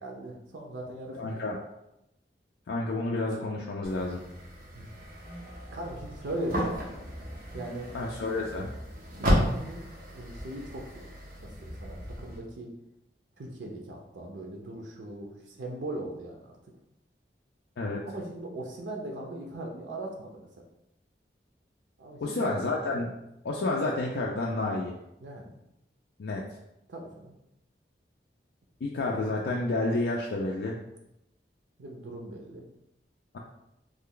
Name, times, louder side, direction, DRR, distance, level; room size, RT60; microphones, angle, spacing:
voice 1, 0.0-1.4 4.7-4.9 5.7-7.0 7.5-7.9 9.2-11.1 11.4-12.7 13.4-16.5 18.1-20.5 22.0-22.5 25.2-25.5 26.9-27.3 31.8-32.6, right 1 dB, 90° right, 0 dB, 0.6 m, -39 dB
voice 2, 1.2-1.6 2.7-4.2 7.9-8.7 17.8-18.0 22.2-23.1 23.4-24.9 26.2-26.4 28.8-30.8 33.3-33.4, left 2 dB, 80° left, -2 dB, 0.4 m, -30 dB
sound 1, 3.8-12.4, equal, 50° right, 0.8 m, -34 dB
3.2 x 2.2 x 3.7 m, 0.85 s
head